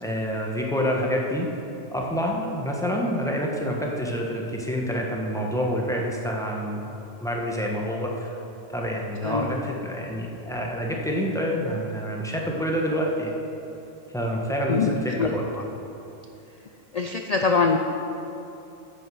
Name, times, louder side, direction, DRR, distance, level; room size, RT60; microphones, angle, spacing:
voice 1, 0.0-1.5 1.9-6.8 7.2-8.4 8.7-13.3 14.1-15.4, equal, 5° left, -2 dB, 1.1 m, -27 dB
voice 2, 14.7-15.6 16.9-17.8, left 4 dB, 85° left, 4 dB, 0.3 m, -24 dB
9.9 x 6.6 x 7.7 m, 2.9 s
omnidirectional pair, 1.4 m